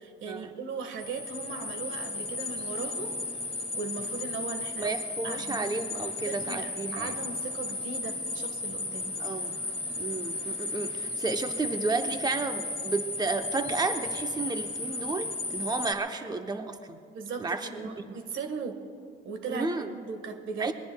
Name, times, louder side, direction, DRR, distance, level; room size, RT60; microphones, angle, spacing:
voice 1, 0.0-3.2 3.7-4.9 5.2-5.6 6.2-9.1 17.1-18.8 19.2-20.7, right 5 dB, 80° right, 7 dB, 1.4 m, -38 dB
sound 1, 1.0-15.9, left 2 dB, 30° left, 2.1 m, -35 dB
voice 2, 4.8-7.1 9.2-9.6 10.0-17.0 17.4-17.7 18.0-18.1 19.5-19.9 20.6-20.7, right 3 dB, 20° right, 6 dB, 0.8 m, -32 dB
25.0 x 20.5 x 2.3 m, 2.4 s
cardioid pair, 90°, 20 cm